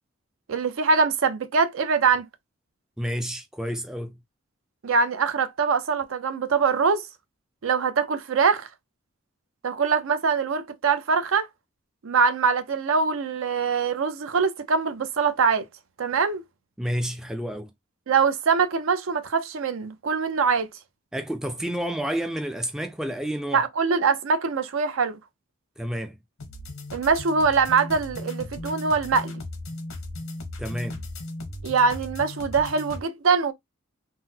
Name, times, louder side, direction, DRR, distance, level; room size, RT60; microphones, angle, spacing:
voice 1, 0.5-2.2 4.8-7.1 7.6-8.7 9.6-11.5 12.0-15.7 16.0-16.4 18.1-20.7 23.5-25.2 26.9-29.3 31.6-33.5, right 5 dB, 75° right, 0.5 m, -23 dB
voice 2, 3.0-4.2 16.8-17.7 21.1-23.6 25.8-26.2 30.6-31.0, equal, 5° right, 0.3 m, -30 dB
sound 1, 26.4-33.0, left 1 dB, 80° left, 0.8 m, -37 dB
3.8 x 2.0 x 2.7 m
head